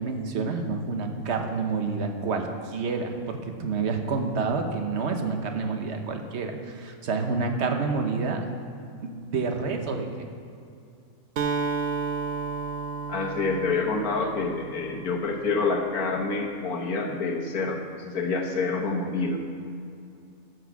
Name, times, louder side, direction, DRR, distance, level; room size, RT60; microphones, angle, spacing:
voice 1, 0.0-8.4 9.0-10.3, right 4 dB, 50° right, 5 dB, 1.2 m, -28 dB
Acoustic guitar, 11.4-15.2, right 5 dB, 70° right, 0.5 m, -32 dB
voice 2, 13.1-19.4, left 4 dB, 80° left, 2 dB, 1.7 m, -27 dB
12.5 x 6.3 x 7.1 m, 2.5 s
omnidirectional pair, 1.5 m